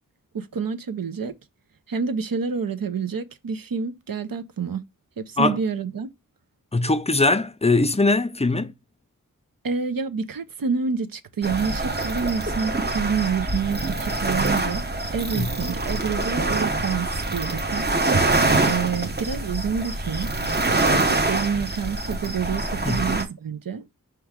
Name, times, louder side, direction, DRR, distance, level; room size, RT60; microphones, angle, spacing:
voice 1, 0.3-1.3 1.9-4.8 5.2-6.1 9.6-14.8 15.1-17.9 18.7-20.3 20.9-23.9, right 6 dB, 75° right, 0.6 m, -28 dB
voice 2, 6.7-8.7 15.3-15.6 22.9-23.1, left 2 dB, 20° left, 0.4 m, -21 dB
sound 1, 11.4-23.2, right 2 dB, 30° right, 0.8 m, -25 dB
4.5 x 3.0 x 3.6 m
wide cardioid pair, 70°, 35 cm